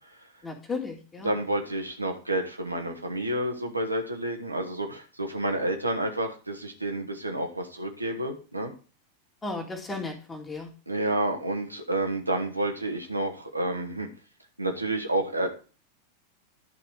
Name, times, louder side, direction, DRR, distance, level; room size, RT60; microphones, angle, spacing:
voice 1, 0.4-1.3 9.4-10.7, left 3 dB, 15° left, 2 dB, 2.0 m, -34 dB
voice 2, 1.2-8.7 10.9-14.1 14.6-15.5, right 1 dB, 85° right, 3 dB, 1.3 m, -29 dB
11.0 x 4.2 x 4.8 m, 0.36 s
figure-of-eight pair, 90°, 0 cm